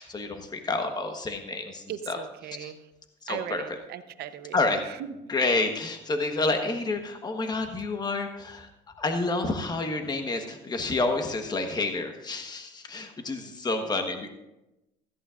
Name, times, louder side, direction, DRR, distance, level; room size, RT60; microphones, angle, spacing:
voice 1, 0.0-2.2 2.5-2.7 3.2-3.8 4.5-4.8 5.3-8.7 9.0-14.3, left 3 dB, 25° left, 5 dB, 1.3 m, -29 dB
voice 2, 1.9-2.8 3.3-4.6, right 11 dB, 70° right, 10 dB, 0.9 m, -38 dB
16.0 x 14.0 x 2.5 m, 0.95 s
cardioid pair, 110°, 17 cm